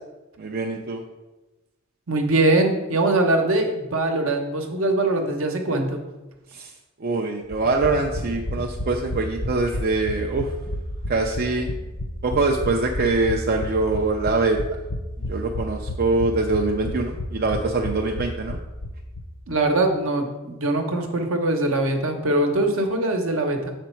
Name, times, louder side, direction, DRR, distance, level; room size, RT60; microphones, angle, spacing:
voice 1, 0.4-1.0 6.5-6.7 7.0-10.5 11.1-11.7 12.2-14.6 15.3-18.6, right 3 dB, 45° right, 1 dB, 0.5 m, -24 dB
voice 2, 2.1-6.0 19.5-23.7, right 2 dB, 65° right, 4 dB, 1.0 m, -22 dB
sound 1, 7.5-19.2 19.5-19.6 19.8-19.9, left 1 dB, 60° left, 0.8 m, -31 dB
6.9 x 5.1 x 4.4 m, 1.1 s
head